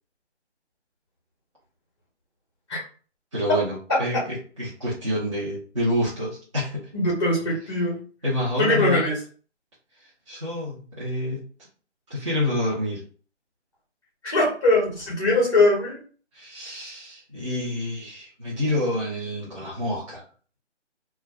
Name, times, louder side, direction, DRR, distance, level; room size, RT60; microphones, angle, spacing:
voice 1, 3.3-6.9 8.2-9.0 10.3-11.4 12.1-13.0 16.3-20.2, left 1 dB, 25° right, -9 dB, 0.7 m, -28 dB
voice 2, 3.9-4.2 6.9-8.0 8.6-9.2 14.2-16.0, left 2 dB, 25° left, -5 dB, 0.7 m, -21 dB
2.3 x 2.2 x 3.2 m, 0.41 s
figure-of-eight pair, 155°, 35 cm